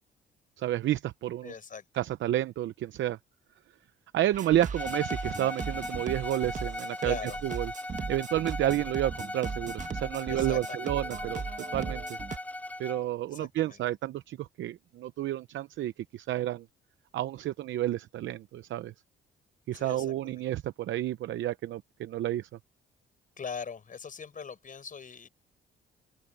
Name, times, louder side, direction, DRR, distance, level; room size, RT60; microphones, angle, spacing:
voice 1, 0.6-1.5 1.9-3.2 4.1-7.7 8.1-11.4 11.7-12.0 12.8-16.7 17.1-18.9 19.7-22.5, right 13 dB, 75° right, 0.7 m, -30 dB
voice 2, 1.4-1.8 7.0-7.4 10.3-10.9 13.3-13.8 19.7-20.4 23.4-25.3, left 6 dB, 40° left, 4.9 m, -41 dB
sound 1, 4.3-12.4, right 6 dB, 40° right, 1.8 m, -38 dB
Bowed string instrument, 4.7-13.1, left 1 dB, 5° left, 0.7 m, -38 dB
open air
cardioid pair, 90°, 20 cm